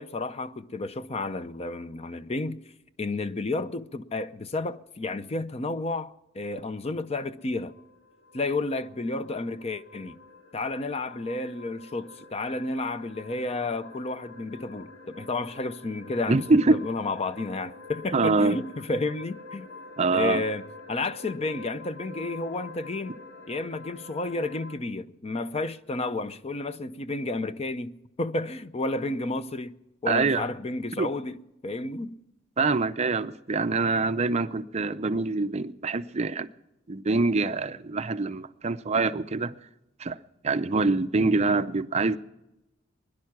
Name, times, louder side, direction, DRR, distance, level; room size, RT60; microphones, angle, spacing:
voice 1, 0.0-2.6 3.0-7.7 8.3-10.2 10.5-19.7 20.1-20.6 20.9-23.2 23.5-29.8 30.0-31.4 31.6-32.2, left 2 dB, 30° left, 0.5 m, -31 dB
sound 1, 6.6-24.8, left 3 dB, 80° left, 2.6 m, -47 dB
voice 2, 16.3-16.8 18.1-18.6 20.0-20.4 30.1-30.5 31.0-31.1 32.6-36.5 36.9-39.5 40.0-40.2 40.4-42.2, right 3 dB, 35° right, 0.5 m, -25 dB
22.0 x 11.0 x 6.0 m
head